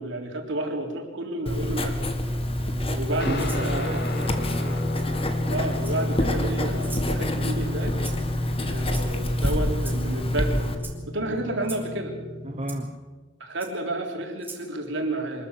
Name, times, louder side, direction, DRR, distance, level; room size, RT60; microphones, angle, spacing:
voice 1, 0.0-4.1 5.5-7.9 8.6-10.7 11.1-12.1 13.4-15.5, right 1 dB, 65° right, 2 dB, 3.8 m, -31 dB
Writing, 1.5-10.8, left 1 dB, 30° left, 1.8 m, -27 dB
voice 2, 2.4-4.9 12.4-13.1, right 1 dB, 35° right, 4 dB, 1.0 m, -34 dB
Guitar, 3.2-12.9, left 2 dB, 50° left, 2.4 m, -34 dB
Rattle (instrument), 3.4-3.7 4.9-5.1 5.8-6.2 6.8-7.1 8.0-8.3 8.9-9.3 9.8-10.0 10.8-11.0 11.6-11.9 12.7-12.8 13.6-13.7 14.4-14.6, right 4 dB, 10° right, 2.8 m, -41 dB
24.5 x 14.0 x 8.3 m, 1.4 s
head